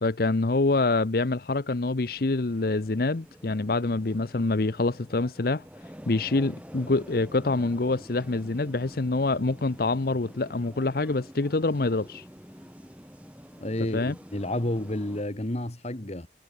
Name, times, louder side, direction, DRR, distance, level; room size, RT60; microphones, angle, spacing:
voice 1, 0.0-5.6 6.1-12.2 13.9-14.2, left 3 dB, 55° left, 0.8 m, -26 dB
sound 1, 2.0-15.2, equal, 10° right, 6.7 m, -47 dB
voice 2, 13.6-16.3, left 1 dB, 35° left, 1.6 m, -30 dB
head